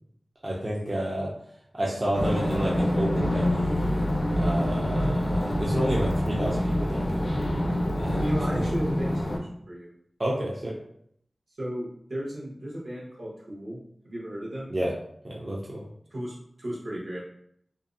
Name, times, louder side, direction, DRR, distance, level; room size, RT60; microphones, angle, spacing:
voice 1, 0.4-1.3 1.7-4.1 4.4-7.4 8.0-8.3 10.2-10.7 14.7-14.9 15.2-15.8, right 1 dB, 40° right, -3 dB, 0.4 m, -30 dB
sound 1, 2.1-9.4, left 1 dB, 70° left, 0.5 m, -26 dB
voice 2, 8.2-9.9 11.6-13.8 14.0-14.7 16.1-17.2, equal, 75° right, -5 dB, 0.9 m, -35 dB
2.5 x 2.0 x 2.5 m, 0.70 s
wide cardioid pair, 70°, 0 cm